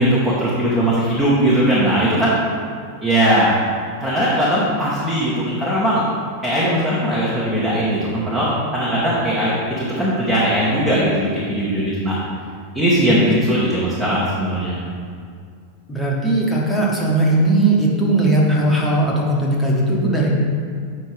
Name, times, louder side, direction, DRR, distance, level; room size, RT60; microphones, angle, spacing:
voice 1, 0.0-2.4 3.0-3.5 4.0-6.0 6.4-12.2 12.7-14.8, right 1 dB, 10° right, -8 dB, 1.5 m, -19 dB
voice 2, 15.9-20.3, right 2 dB, 5° left, -4 dB, 1.5 m, -18 dB
8.4 x 5.5 x 3.5 m, 2.2 s
figure-of-eight pair, 90°, 0 cm